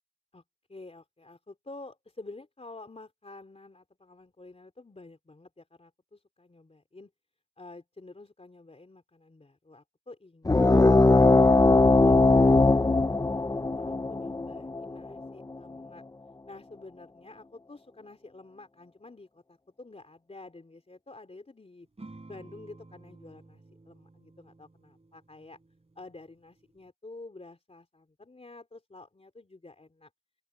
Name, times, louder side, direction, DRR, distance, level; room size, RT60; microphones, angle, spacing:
voice 1, 0.7-7.1 7.6-10.7 11.2-16.0 16.5-21.9 22.3-25.6 25.9-30.1, left 2 dB, 35° left, 3.3 m, -49 dB
sound 1, 10.4-15.6, left 3 dB, 20° left, 0.5 m, -20 dB
sound 2, 22.0-26.9, right 2 dB, 35° right, 4.5 m, -52 dB
open air
wide cardioid pair, 105°, 18 cm